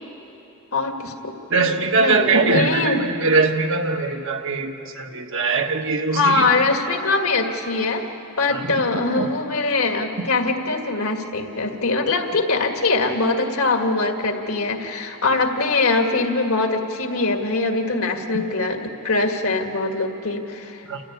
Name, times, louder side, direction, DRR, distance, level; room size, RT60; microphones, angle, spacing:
voice 1, 0.7-1.7 1.9-3.0 6.1-8.1 8.4-18.8 19.0-20.8, left 3 dB, 70° left, 4 dB, 2.0 m, -22 dB
voice 2, 1.5-6.5 8.5-8.6 9.1-9.3 20.9-21.0, right 4 dB, 60° right, 4 dB, 1.4 m, -21 dB
28.5 x 14.0 x 9.6 m, 2.9 s
head